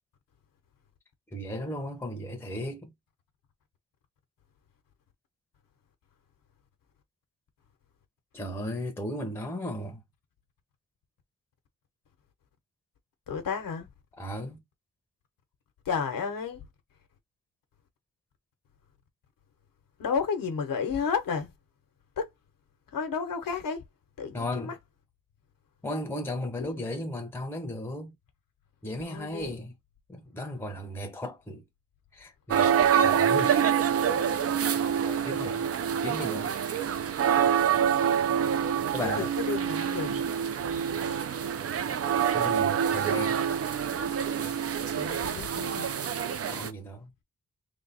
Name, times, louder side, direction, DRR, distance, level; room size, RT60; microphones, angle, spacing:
voice 1, 1.3-2.9 8.3-10.0 14.1-14.6 24.3-24.7 25.8-28.1 28.8-29.7 30.1-31.6 32.1-33.7 35.0-35.7 36.0-36.5 38.9-39.3 42.3-43.4 46.5-47.1, left 1 dB, 5° left, 0.7 m, -35 dB
voice 2, 13.3-13.9 15.8-16.6 20.0-21.5 22.2-22.3 22.9-23.8 24.2-24.7 26.6-26.7 29.1-29.5 32.7-32.9 39.0-40.2 44.9-45.9, left 6 dB, 80° left, 0.9 m, -32 dB
sound 1, 32.5-46.7, right 8 dB, 45° right, 0.4 m, -26 dB
3.3 x 2.3 x 4.0 m
wide cardioid pair, 170°, 33 cm